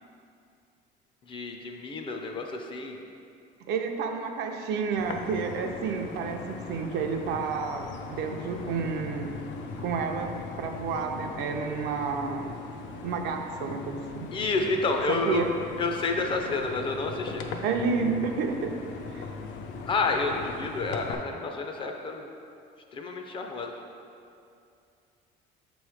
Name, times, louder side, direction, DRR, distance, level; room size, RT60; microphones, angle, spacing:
voice 1, 1.3-3.0 14.3-15.4 15.8-17.4 19.9-22.3 22.9-23.7, left 3 dB, 25° left, 3 dB, 0.4 m, -29 dB
voice 2, 3.7-9.4 9.8-12.6 13.0-14.3 15.1-15.5 17.6-19.3, right 5 dB, 65° right, 4 dB, 0.5 m, -30 dB
sound 1, 5.0-21.1, left 4 dB, 85° left, 0.5 m, -39 dB
7.1 x 3.1 x 4.8 m, 2.5 s
cardioid pair, 175°, 19 cm